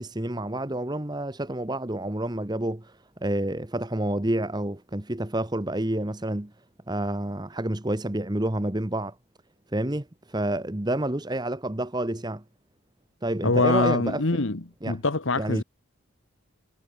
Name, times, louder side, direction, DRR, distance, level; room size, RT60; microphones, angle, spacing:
voice 1, 0.0-6.5 6.9-9.1 9.7-12.4 13.2-14.4 14.8-15.0 15.4-15.6, right 1 dB, 20° right, 1.1 m, -29 dB
voice 2, 13.4-15.6, left 3 dB, 65° left, 1.3 m, -24 dB
head